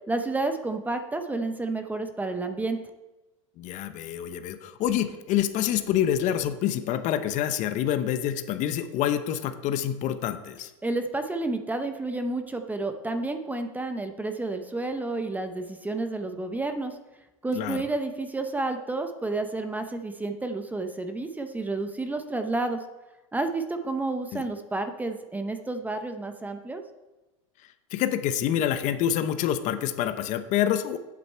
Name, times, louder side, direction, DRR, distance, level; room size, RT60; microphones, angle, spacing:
voice 1, 0.1-2.8 10.8-16.9 17.4-22.8 23.3-26.8, right 2 dB, 10° right, 7 dB, 0.7 m, -30 dB
voice 2, 3.6-10.7 17.5-17.8 24.3-24.4 27.9-31.0, left 10 dB, 45° left, 10 dB, 0.8 m, -27 dB
8.7 x 7.8 x 4.4 m, 1.1 s
supercardioid pair, 115°, 17 cm